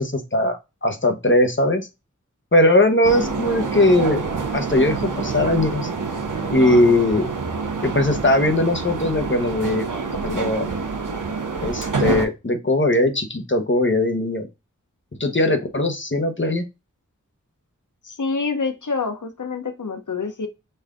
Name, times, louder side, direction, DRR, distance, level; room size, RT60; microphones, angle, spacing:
voice 1, 0.0-1.9 2.5-4.2 4.5-5.9 6.5-7.3 7.8-9.9 10.2-10.7 11.6-14.4 15.2-16.6, left 1 dB, 40° left, 1.0 m, -19 dB
sound 1, 3.0-12.3, right 4 dB, 85° right, 0.9 m, -27 dB
voice 2, 18.0-20.5, left 4 dB, 75° left, 0.8 m, -27 dB
5.5 x 2.7 x 3.6 m
wide cardioid pair, 40°, 31 cm